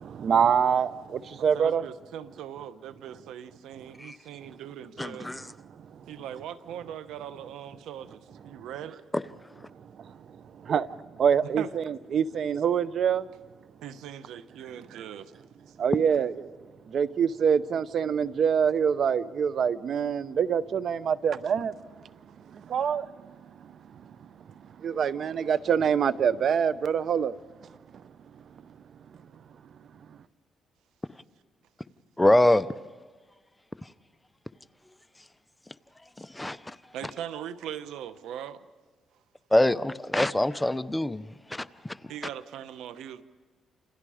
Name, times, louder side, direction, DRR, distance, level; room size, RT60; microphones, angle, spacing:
voice 1, 0.0-1.8 4.5-4.6 5.7-6.1 8.5-8.7 9.7-13.3 15.8-29.4 29.7-30.2, right 7 dB, 60° right, 0.8 m, -27 dB
voice 2, 1.5-5.3 6.1-9.0 11.4-11.7 13.8-15.3 15.7-15.8 36.9-38.7 42.1-43.2, right 10 dB, 85° right, 0.9 m, -40 dB
voice 3, 5.0-5.4 9.1-9.2 32.2-32.7 36.2-36.7 39.5-41.9, left 1 dB, 10° left, 0.7 m, -24 dB
29.0 x 27.5 x 5.0 m
cardioid pair, 90°, 0 cm